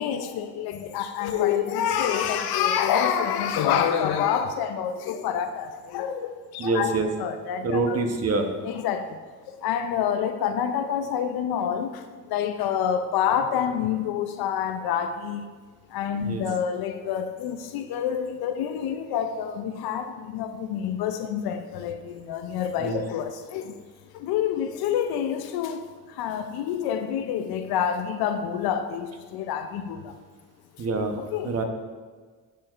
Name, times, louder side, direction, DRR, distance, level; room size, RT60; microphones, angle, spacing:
voice 1, 0.0-8.0 8.6-9.2 9.5-12.0 12.3-15.5 15.9-23.8 24.1-30.1 31.2-31.5, left 8 dB, 85° left, 8 dB, 0.5 m, -27 dB
voice 2, 6.6-7.1 7.6-8.5 16.2-16.4 22.8-23.0 30.8-31.2 31.4-31.6, right 3 dB, 45° right, 5 dB, 0.9 m, -25 dB
11.0 x 4.5 x 2.4 m, 1.5 s
cardioid pair, 80°, 36 cm